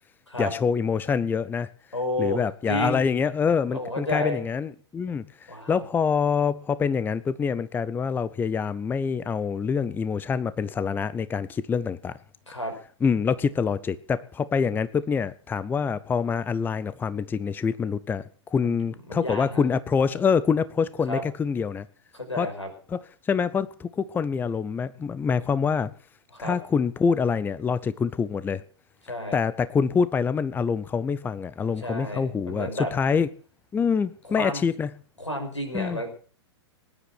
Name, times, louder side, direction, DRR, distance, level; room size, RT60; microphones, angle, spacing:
voice 1, 0.4-1.7 2.2-12.2 13.0-21.9 22.4-22.5 22.9-23.0 23.2-25.9 26.4-28.6 29.3-33.3 33.7-34.9 35.7-36.0, left 6 dB, 15° left, 0.7 m, -26 dB
voice 2, 1.9-3.0 3.7-4.4 5.5-5.8 12.5-12.7 18.6-18.8 19.1-19.6 21.1-21.2 22.1-22.7 26.3-26.6 29.1-29.4 31.8-32.9 34.2-34.6 35.2-36.1, left 1 dB, 90° left, 5.8 m, -31 dB
19.5 x 10.5 x 6.1 m
figure-of-eight pair, 105°, 15 cm